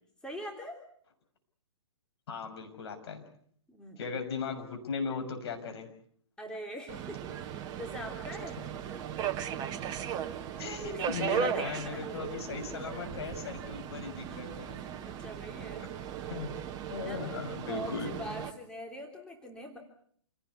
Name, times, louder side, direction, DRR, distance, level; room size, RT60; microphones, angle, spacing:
voice 1, 0.2-0.8 3.7-4.0 6.4-8.6 10.9-12.1 14.3-14.4 15.0-15.9 17.0-17.3 17.7-19.8, equal, 5° left, 1 dB, 3.3 m, -43 dB
voice 2, 2.3-3.2 4.0-5.9 10.6-14.8 16.3-16.5 16.9-18.1, left 5 dB, 55° left, 5 dB, 6.5 m, -37 dB
Subway metro underground, 6.9-18.5, right 9 dB, 25° right, 1.5 m, -37 dB
28.5 x 17.5 x 8.4 m, 0.63 s
figure-of-eight pair, 130°, 16 cm